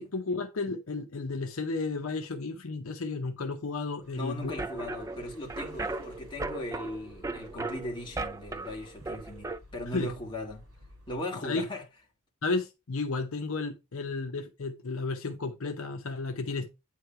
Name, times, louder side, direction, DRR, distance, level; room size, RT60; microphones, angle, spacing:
voice 1, 0.0-4.5 9.9-10.1 11.4-11.6 12.4-16.7, left 3 dB, 65° left, 0.7 m, -33 dB
sound 1, 4.0-11.2, left 1 dB, 70° right, 3.0 m, -54 dB
voice 2, 4.1-10.6 11.1-11.8, left 1 dB, 20° left, 1.6 m, -38 dB
sound 2, 4.4-9.6, right 3 dB, 15° right, 0.4 m, -37 dB
8.9 x 3.2 x 4.4 m
head